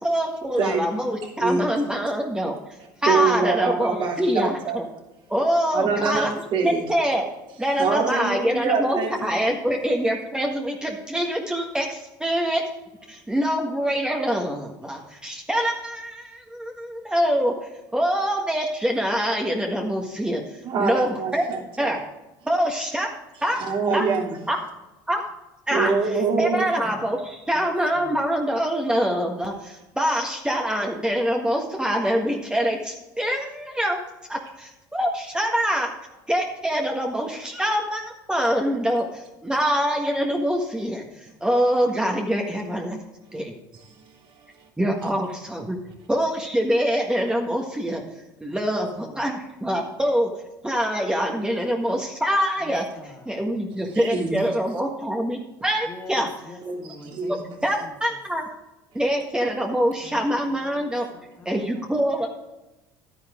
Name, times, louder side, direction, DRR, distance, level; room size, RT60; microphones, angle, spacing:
voice 1, 0.0-2.5 3.0-4.8 5.3-6.3 6.6-7.3 7.6-12.6 13.1-17.6 17.9-20.4 20.8-21.4 21.8-22.0 22.4-23.1 23.4-23.6 23.9-24.0 24.5-24.6 25.1-25.2 25.7-25.9 26.4-34.0 34.3-35.9 36.3-41.0 41.4-43.0 43.3-43.5 44.8-45.8 46.1-48.0 48.4-50.3 50.6-52.9 53.2-56.3 57.3-57.4 57.6-58.5 58.9-61.1 61.4-62.3, equal, 10° right, 1 dB, 1.6 m, -24 dB
voice 2, 1.4-1.8 3.1-4.8 5.7-6.8 7.8-9.3 20.6-22.0 23.6-24.4 25.7-26.9 53.9-54.4 56.6-57.3, right 5 dB, 55° right, 0 dB, 3.1 m, -25 dB
voice 3, 27.6-28.2 49.0-49.2 52.6-53.2 55.9-57.6 60.0-60.4 60.7-61.6, left 2 dB, 15° left, -1 dB, 2.3 m, -44 dB
11.5 x 9.8 x 3.7 m, 0.98 s
supercardioid pair, 85°, 10 cm